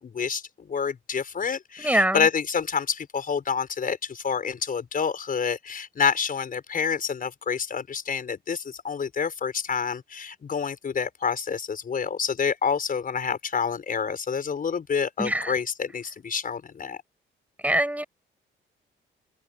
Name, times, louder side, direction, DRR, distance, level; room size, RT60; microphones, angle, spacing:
voice 1, 0.0-17.0, left 6 dB, 45° left, 5.5 m, -28 dB
voice 2, 1.8-2.2 15.2-15.5 17.6-18.0, right 1 dB, 5° right, 6.6 m, -23 dB
cardioid pair, 90°, 20 cm